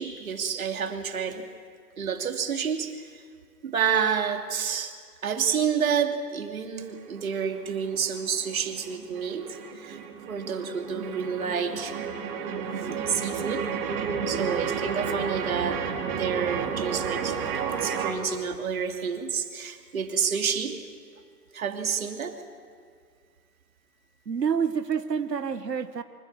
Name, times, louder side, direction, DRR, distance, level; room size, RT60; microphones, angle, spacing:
voice 1, 0.0-1.5 2.0-3.2 3.6-4.9 5.2-10.0 10.3-12.0 12.5-13.7 14.3-15.8 16.2-17.4 17.8-20.8 21.5-22.3, right 7 dB, 55° right, 5 dB, 2.7 m, -29 dB
sound 1, 6.8-18.1, right 6 dB, 35° right, 3.4 m, -32 dB
voice 2, 24.3-26.0, right 7 dB, 80° right, 11 dB, 1.2 m, -28 dB
25.0 x 24.0 x 7.4 m, 2.1 s
figure-of-eight pair, 130°, 48 cm